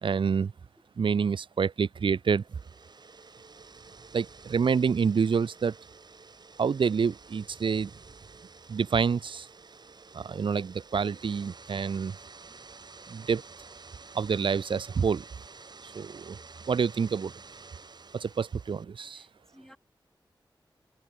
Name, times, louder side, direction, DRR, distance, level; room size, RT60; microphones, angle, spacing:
voice 1, 0.0-0.5 1.0-2.4 4.1-5.8 6.6-7.9 8.7-9.5 10.1-12.2 13.1-13.4 14.1-15.2 15.8-16.4 16.7-17.3 18.1-19.2, right 6 dB, 70° right, 0.5 m, -27 dB
sound 1, 2.4-18.8, right 4 dB, 55° right, 1.3 m, -50 dB
voice 2, 17.1-17.5 19.1-19.8, equal, 5° left, 3.8 m, -58 dB
wide cardioid pair, 100°, 9 cm